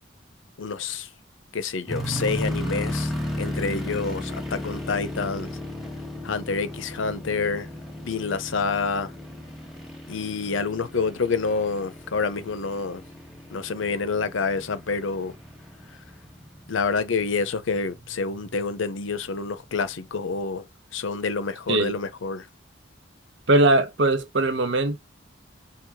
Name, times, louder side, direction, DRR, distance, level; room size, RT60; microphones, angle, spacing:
voice 1, 0.6-1.1 1.5-5.5 6.2-7.7 8.0-9.1 10.1-13.0 13.5-15.3 16.7-20.7 20.9-22.5, left 4 dB, 80° left, 0.7 m, -28 dB
sound 1, 1.9-18.9 19.5-19.6 20.1-20.4, left 1 dB, ahead, 1.1 m, -35 dB
voice 2, 23.5-25.0, right 2 dB, 70° right, 0.9 m, -20 dB
4.8 x 3.0 x 3.5 m
head